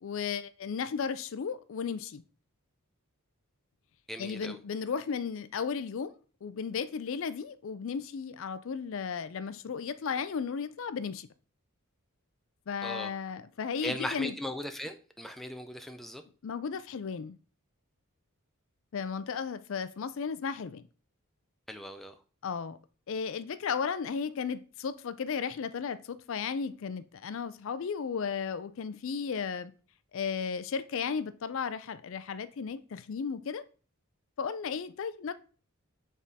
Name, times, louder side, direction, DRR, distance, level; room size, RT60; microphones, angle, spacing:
voice 1, 0.0-2.2 4.2-6.1 6.4-11.3 12.7-14.3 16.4-17.4 18.9-20.8 22.4-22.8 23.1-29.7 30.1-33.6 34.4-35.3, left 6 dB, 60° left, 0.4 m, -34 dB
voice 2, 4.1-4.6 12.8-13.1 13.8-16.2 21.7-22.1, left 1 dB, ahead, 0.4 m, -38 dB
7.3 x 3.7 x 4.0 m
head